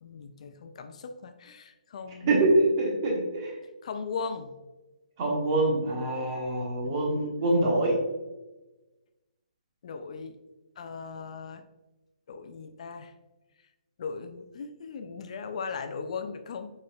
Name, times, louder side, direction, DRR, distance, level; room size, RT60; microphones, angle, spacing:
voice 1, 0.0-2.6 3.8-4.5 6.8-7.6 9.8-10.4 10.8-11.6 12.3-13.1 14.0-16.7, left 5 dB, 55° left, 8 dB, 0.4 m, -38 dB
voice 2, 2.2-3.6 5.2-8.0, right 2 dB, 35° right, -1 dB, 1.2 m, -25 dB
5.1 x 4.2 x 2.3 m, 1.1 s
hypercardioid pair, 150°, 4 cm